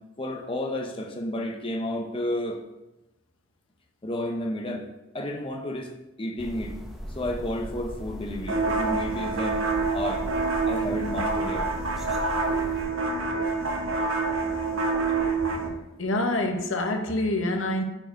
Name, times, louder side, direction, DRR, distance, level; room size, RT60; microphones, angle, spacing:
voice 1, 0.2-2.6 4.0-4.9 5.1-5.9 6.2-6.8 7.1-10.2 10.6-11.7, left 1 dB, 25° left, 1 dB, 0.6 m, -31 dB
sound 1, 6.4-12.8, equal, ahead, 0.9 m, -38 dB
sound 2, 8.5-15.7, right 3 dB, 80° right, 1.2 m, -27 dB
voice 2, 16.0-17.8, left 1 dB, 80° left, 4 dB, 1.1 m, -26 dB
7.5 x 4.6 x 5.2 m, 0.98 s
head